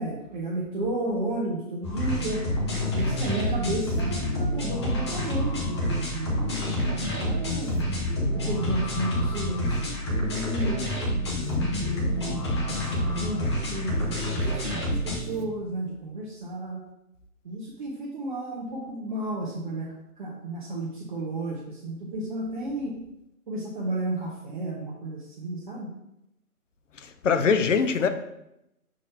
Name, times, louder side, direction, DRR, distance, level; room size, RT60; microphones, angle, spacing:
voice 1, 0.0-2.4 2.9-7.7 8.3-10.9 11.6-16.8 17.4-19.9 20.2-22.9 23.5-25.9, right 1 dB, 35° right, 1.0 m, -33 dB
sound 1, 1.8-15.2, left 1 dB, 20° left, 0.8 m, -28 dB
sound 2, 2.7-4.5 6.5-8.2 10.3-11.9 14.2-15.8, right 2 dB, 90° right, 1.2 m, -40 dB
voice 2, 26.9-28.1, left 5 dB, 55° left, 0.7 m, -23 dB
6.3 x 3.1 x 5.5 m
hypercardioid pair, 155°, 44 cm